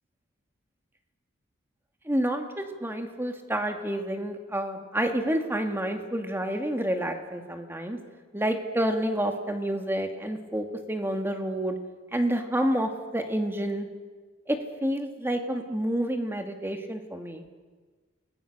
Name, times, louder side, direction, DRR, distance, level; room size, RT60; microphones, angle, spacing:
voice 1, 2.0-8.0 8.3-11.8 12.1-13.9 14.5-17.5, right 1 dB, 10° right, 5 dB, 2.2 m, -29 dB
29.0 x 20.0 x 6.7 m, 1.4 s
head